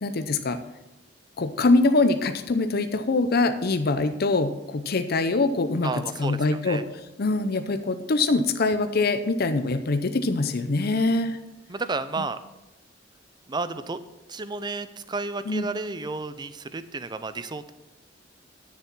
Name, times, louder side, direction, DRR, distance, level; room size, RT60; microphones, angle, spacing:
voice 1, 0.0-0.6 1.4-5.9 6.2-6.8 7.2-11.4 15.5-15.7, left 3 dB, 55° left, 9 dB, 0.7 m, -23 dB
voice 2, 5.8-6.8 10.8-11.2 11.7-12.4 13.5-14.0 14.3-17.7, right 3 dB, 25° right, 13 dB, 0.5 m, -32 dB
9.9 x 6.9 x 6.0 m, 0.96 s
head